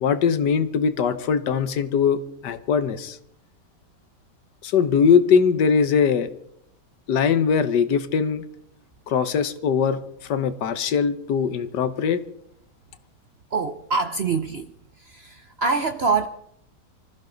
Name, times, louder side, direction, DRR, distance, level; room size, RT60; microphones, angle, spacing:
voice 1, 0.0-3.2 4.6-6.3 7.1-8.4 9.1-12.2, left 6 dB, 75° left, 11 dB, 1.6 m, -21 dB
voice 2, 13.5-14.7 15.0-16.3, right 4 dB, 55° right, 9 dB, 0.7 m, -25 dB
25.5 x 14.5 x 3.9 m, 0.73 s
omnidirectional pair, 1.9 m